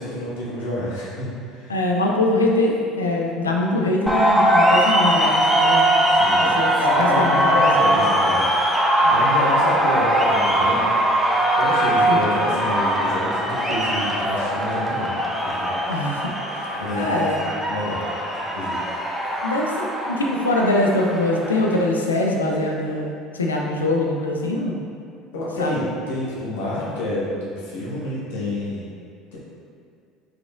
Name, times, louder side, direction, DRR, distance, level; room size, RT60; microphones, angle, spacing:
voice 1, 0.0-1.7 6.1-8.4 9.1-10.9 11.6-15.1 15.4-15.7 16.8-18.0 18.4-18.8 25.3-28.9 29.3-29.4, left 1 dB, 75° left, -7 dB, 1.1 m, -28 dB
voice 2, 1.7-6.0 6.6-8.1 9.0-9.3 12.1-12.2 15.9-17.4 19.4-24.8 25.6-25.8, left 2 dB, 90° left, 0 dB, 0.4 m, -23 dB
sound 1, 4.1-21.8, right 1 dB, 5° left, 0.7 m, -21 dB
4.6 x 3.6 x 2.5 m, 2.4 s
hypercardioid pair, 65°, 0 cm